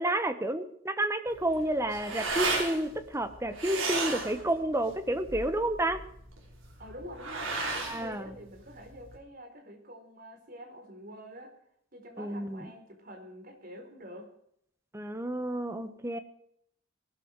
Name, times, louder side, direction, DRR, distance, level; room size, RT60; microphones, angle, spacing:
voice 1, 0.0-6.0 7.8-8.3 12.2-12.7 14.9-16.2, right 1 dB, 15° right, 9 dB, 1.2 m, -30 dB
sound 1, 1.3-9.2, right 3 dB, 75° right, 5.3 m, -35 dB
voice 2, 6.8-11.5 11.9-14.3, equal, 45° right, 3 dB, 4.6 m, -47 dB
19.5 x 13.0 x 4.8 m, 0.69 s
head